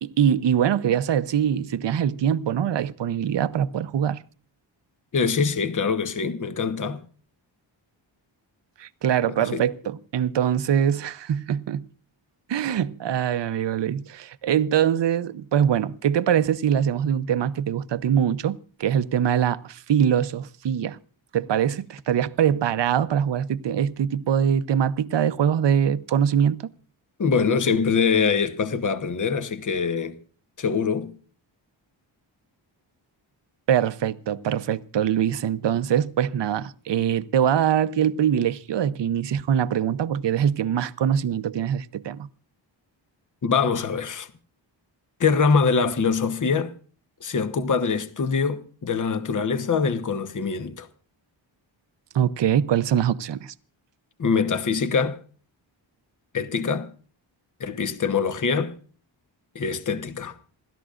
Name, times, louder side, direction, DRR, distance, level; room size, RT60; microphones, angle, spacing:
voice 1, 0.0-4.2 8.8-11.8 12.5-21.0 21.3-26.7 33.7-42.3 52.1-53.5, right 9 dB, 65° right, 0.8 m, -23 dB
voice 2, 5.1-7.0 9.5-9.6 27.2-30.2 30.6-31.1 43.4-44.3 45.2-46.7 47.2-50.9 54.2-55.2 56.3-56.9 57.6-58.7 59.5-60.3, left 5 dB, 40° left, 1.1 m, -24 dB
27.5 x 13.5 x 2.5 m
wide cardioid pair, 100°, 46 cm